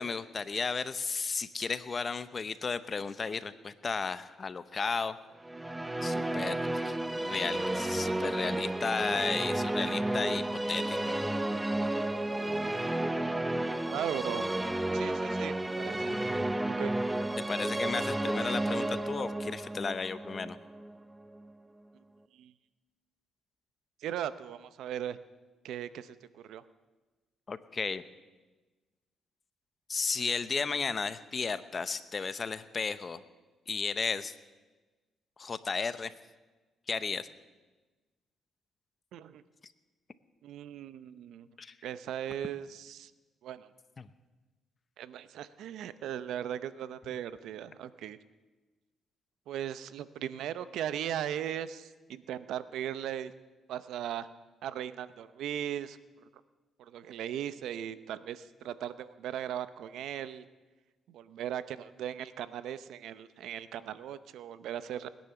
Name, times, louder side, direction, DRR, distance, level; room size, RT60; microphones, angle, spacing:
voice 1, 0.0-5.2 6.0-11.1 17.5-20.6 27.5-28.0 29.9-33.2 33.7-34.3 35.4-36.1 36.9-37.3 41.6-41.7 44.0-44.1, left 5 dB, 35° left, 14 dB, 0.8 m, -34 dB
sound 1, 5.4-21.5, right 1 dB, 10° right, 0.8 m, -32 dB
voice 2, 13.9-14.5 14.9-16.2 16.8-16.9 22.3-22.5 24.0-25.2 25.6-26.6 39.1-39.4 40.4-41.5 41.8-43.1 43.4-43.7 45.0-48.2 49.5-53.3 53.7-54.3 54.6-56.0 56.8-60.4 61.1-65.1, right 10 dB, 80° right, 14 dB, 0.7 m, -38 dB
20.5 x 10.5 x 6.9 m, 1.3 s
cardioid pair, 90°, 0 cm